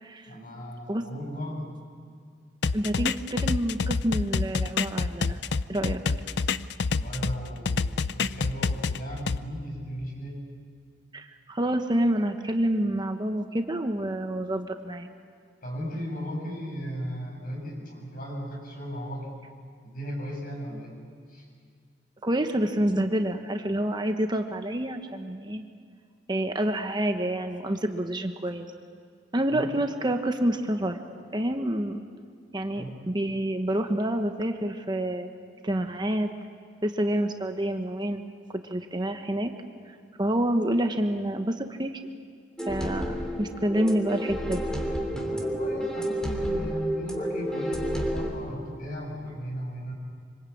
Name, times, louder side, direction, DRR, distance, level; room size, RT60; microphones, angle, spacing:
voice 1, 0.3-1.7 6.8-10.4 15.6-19.4 19.8-21.0 21.3-21.5 29.5-29.8 32.8-33.0 45.2-49.9, equal, 50° left, -1 dB, 7.8 m, -36 dB
sound 1, 2.6-7.4 7.7-9.4, left 4 dB, 65° left, 0.6 m, -27 dB
voice 2, 2.7-5.4 5.7-6.0 11.1-15.1 22.2-25.6 26.3-28.7 29.3-31.0 31.3-32.0 32.5-35.3 35.6-36.3 36.8-38.2 38.6-39.5 40.2-41.9 42.7-44.6, right 1 dB, 25° right, 6 dB, 1.1 m, -28 dB
sound 2, 42.6-48.3, equal, 5° left, 3.0 m, -30 dB
26.0 x 25.5 x 8.6 m, 2.1 s
head